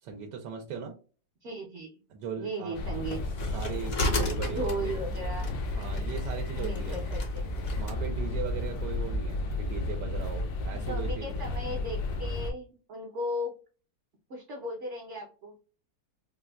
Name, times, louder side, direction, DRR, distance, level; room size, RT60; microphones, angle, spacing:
voice 1, 0.0-0.9 2.1-2.8 3.5-4.9 5.7-7.0 7.7-11.5, right 6 dB, 90° right, 3 dB, 1.2 m, -38 dB
voice 2, 1.4-2.0 2.4-3.3 4.5-5.5 6.5-7.5 10.9-13.5 14.3-15.5, right 1 dB, 55° right, 0 dB, 0.9 m, -36 dB
sound 1, 2.7-12.5, left 2 dB, 75° left, 1.2 m, -33 dB
sound 2, 3.1-8.0, left 2 dB, 50° left, 0.7 m, -35 dB
4.1 x 2.2 x 2.2 m, 0.37 s
omnidirectional pair, 1.8 m